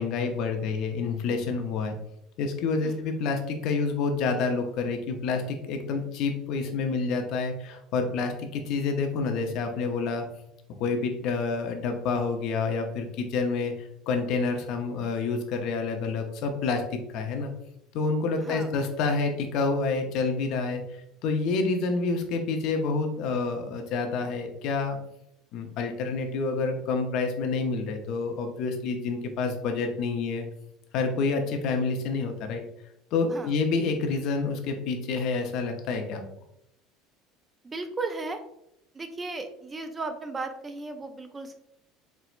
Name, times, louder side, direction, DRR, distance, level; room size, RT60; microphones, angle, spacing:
voice 1, 0.0-2.0 2.4-10.3 10.8-17.5 17.9-20.8 21.2-25.0 25.5-30.5 30.9-32.6 33.1-36.2, left 4 dB, 60° left, 5 dB, 0.5 m, -28 dB
voice 2, 18.4-18.7 33.3-33.5 37.6-38.4 38.9-41.6, right 3 dB, 20° right, 7 dB, 0.3 m, -35 dB
4.3 x 2.0 x 2.4 m, 0.78 s
supercardioid pair, 115°, 0 cm